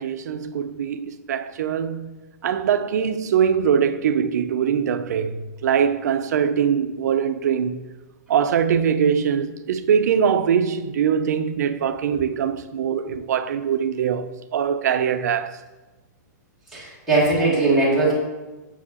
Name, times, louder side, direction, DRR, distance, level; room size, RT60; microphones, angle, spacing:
voice 1, 0.0-2.2 2.4-7.8 8.3-15.6, right 7 dB, 60° right, 0.4 m, -22 dB
voice 2, 16.7-18.1, right 2 dB, ahead, 1.6 m, -20 dB
7.0 x 4.7 x 2.9 m
hypercardioid pair, 175°, 10 cm